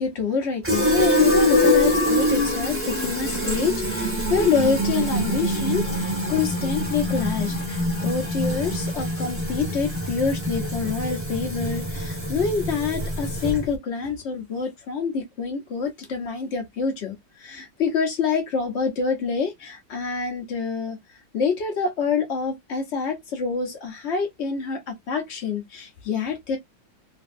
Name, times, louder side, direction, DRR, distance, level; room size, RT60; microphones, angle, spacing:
voice 1, 0.0-21.0 21.3-26.6, left 5 dB, 60° left, 0.6 m, -26 dB
Fill (with liquid), 0.6-13.7, left 1 dB, 10° right, 0.7 m, -24 dB
3.1 x 2.6 x 2.4 m
omnidirectional pair, 2.4 m